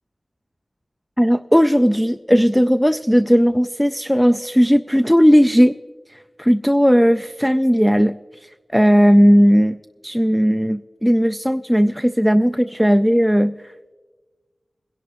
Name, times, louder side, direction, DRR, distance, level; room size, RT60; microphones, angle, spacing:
voice 1, 1.2-5.7 6.4-8.5 8.7-9.8 10.0-13.6, equal, ahead, 10 dB, 0.3 m, -16 dB
22.5 x 11.0 x 3.0 m, 1.3 s
wide cardioid pair, 65°, 0 cm